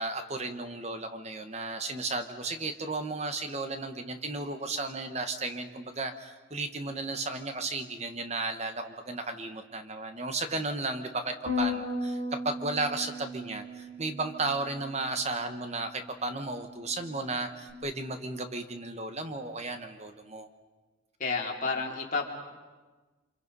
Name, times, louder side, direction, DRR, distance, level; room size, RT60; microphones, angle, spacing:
voice 1, 0.0-20.5, right 3 dB, 35° right, 7 dB, 1.2 m, -34 dB
Bass guitar, 11.5-17.7, left 2 dB, 75° right, 3.0 m, -37 dB
voice 2, 21.2-22.3, left 4 dB, 45° left, -1 dB, 3.5 m, -30 dB
29.5 x 26.0 x 5.5 m, 1.3 s
head